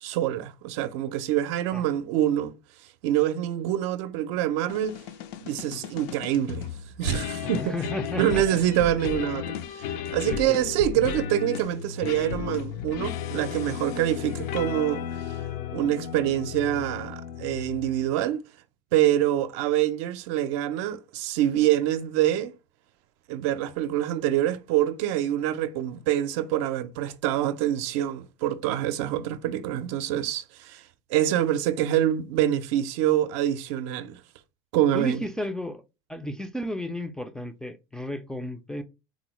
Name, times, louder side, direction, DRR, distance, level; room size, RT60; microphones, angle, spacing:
voice 1, 0.0-2.5 3.0-5.0 5.4-6.7 7.0-7.7 8.2-15.0 15.7-18.4 18.9-22.5 23.3-30.8 31.1-34.2 34.7-35.2, right 12 dB, 70° right, 0.5 m, -25 dB
sound 1, 4.7-18.2, left 8 dB, 70° left, 0.5 m, -34 dB
voice 2, 7.4-8.4 8.8-8.9 10.3-10.7 34.9-35.8 36.1-38.8, left 1 dB, 5° left, 0.3 m, -33 dB
3.8 x 2.0 x 3.0 m
supercardioid pair, 120°, 15 cm